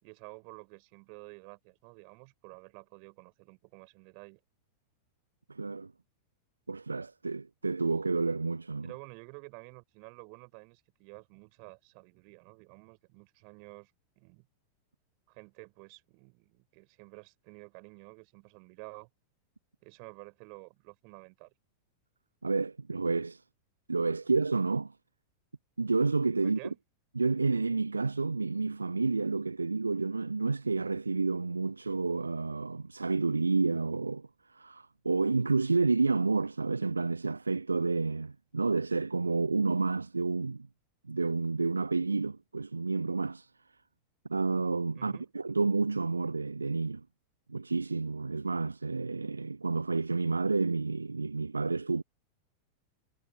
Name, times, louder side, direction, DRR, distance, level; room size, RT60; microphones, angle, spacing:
voice 1, 0.0-4.4 8.8-14.5 15.3-19.1 19.8-21.5 26.4-26.8 44.9-45.3, right 40 dB or more, 45° right, 4.9 m, -51 dB
voice 2, 5.5-5.9 6.7-8.9 22.4-23.4 23.9-24.9 25.8-26.6 27.2-40.7 41.1-43.5 44.3-47.0 47.5-52.0, right 3 dB, 80° right, 0.8 m, -30 dB
figure-of-eight pair, 90°, 0 cm